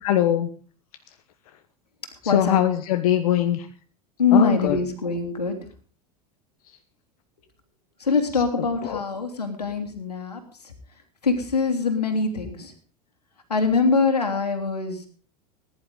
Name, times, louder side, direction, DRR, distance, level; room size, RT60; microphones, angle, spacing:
voice 1, 0.0-0.5 2.2-3.7 4.3-4.8 8.8-9.0, left 12 dB, 65° left, 9 dB, 1.3 m, -21 dB
voice 2, 2.2-2.6 4.2-5.6 8.0-10.7 11.2-12.7 13.5-15.1, left 4 dB, 90° left, 6 dB, 3.1 m, -23 dB
20.5 x 11.0 x 3.9 m, 0.40 s
hypercardioid pair, 85°, 20 cm